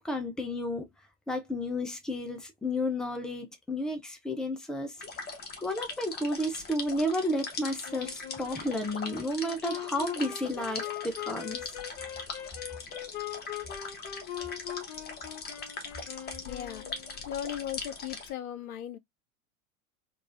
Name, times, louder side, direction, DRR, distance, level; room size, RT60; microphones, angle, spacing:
voice 1, 0.0-0.8 1.3-5.0 5.6-11.6, left 1 dB, ahead, 0.4 m, -32 dB
sound 1, 5.0-18.3, left 4 dB, 20° left, 1.0 m, -41 dB
Wind instrument woodwind instrument, 7.8-17.3, left 11 dB, 50° left, 0.8 m, -41 dB
voice 2, 16.4-16.9 17.3-19.0, left 10 dB, 85° left, 0.5 m, -37 dB
3.9 x 2.4 x 2.4 m
figure-of-eight pair, 85°, 43 cm